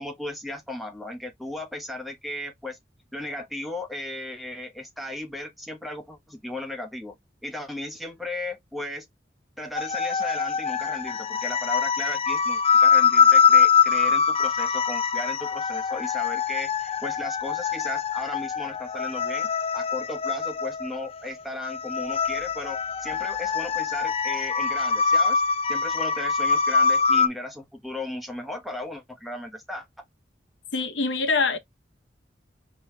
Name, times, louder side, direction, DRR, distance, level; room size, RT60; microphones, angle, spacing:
voice 1, 0.0-2.8 3.1-7.1 7.4-9.1 9.6-25.4 25.7-29.9, left 1 dB, ahead, 1.1 m, -36 dB
sound 1, 9.7-27.3, left 6 dB, 35° left, 0.4 m, -23 dB
voice 2, 30.7-31.6, left 4 dB, 80° left, 1.0 m, -24 dB
5.5 x 2.9 x 3.2 m
head